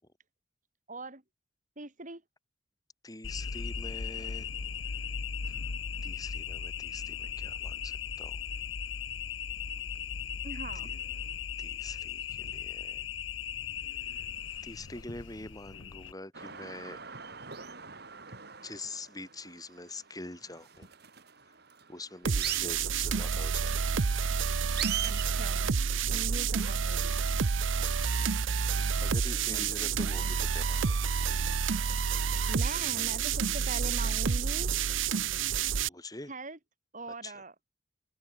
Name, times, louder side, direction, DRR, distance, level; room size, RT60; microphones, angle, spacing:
voice 1, 0.9-1.2 1.8-2.2 10.4-10.9 25.0-25.7 26.1-27.2 29.5-29.6 29.9-30.4 32.5-34.7 36.3-36.6 36.9-37.5, right 2 dB, 40° right, 3.5 m, -41 dB
voice 2, 3.0-4.5 5.5-5.6 6.0-8.4 10.8-10.9 11.6-13.0 14.0-14.3 14.6-17.0 18.6-20.9 21.5-21.6 21.9-23.8 26.1-26.2 27.7-28.3 29.0-31.1 35.8-36.3 37.2-37.4, left 2 dB, 20° left, 5.0 m, -45 dB
sound 1, 3.2-16.1, left 7 dB, 85° left, 1.0 m, -37 dB
sound 2, 16.3-25.3, right 10 dB, 55° right, 5.0 m, -41 dB
sound 3, 22.2-35.9, right 6 dB, 85° right, 0.7 m, -29 dB
head